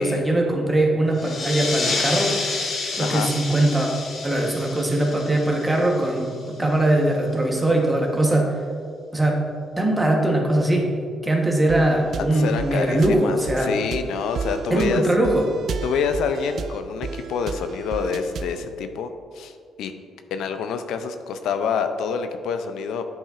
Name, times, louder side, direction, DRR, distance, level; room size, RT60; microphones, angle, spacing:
voice 1, 0.0-2.3 2.9-3.9 4.2-8.6 9.1-9.4 9.8-10.9 11.2-13.7 14.7-15.5, right 1 dB, 15° right, 1 dB, 1.1 m, -21 dB
sound 1, 1.1-6.4, left 3 dB, 60° left, 1.0 m, -29 dB
voice 2, 3.0-3.3 12.2-15.0 15.8-19.9 20.3-23.0, left 6 dB, 85° left, 8 dB, 0.4 m, -27 dB
sound 2, 11.7-18.6, right 5 dB, 60° right, 0.4 m, -33 dB
8.6 x 5.4 x 2.5 m, 2.2 s
cardioid pair, 90°, 0 cm